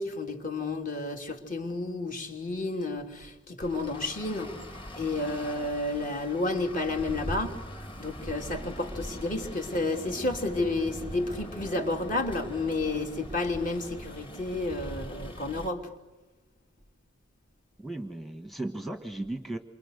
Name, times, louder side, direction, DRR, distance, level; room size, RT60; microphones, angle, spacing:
voice 1, 0.0-4.5 5.0-7.5 8.0-15.8, left 2 dB, 40° left, 4 dB, 3.1 m, -31 dB
Traffic noise roadway noise, 3.6-15.7, equal, 25° left, 2.6 m, -41 dB
voice 2, 17.8-19.6, right 2 dB, ahead, 6 dB, 1.3 m, -36 dB
28.5 x 25.5 x 6.7 m, 1.1 s
head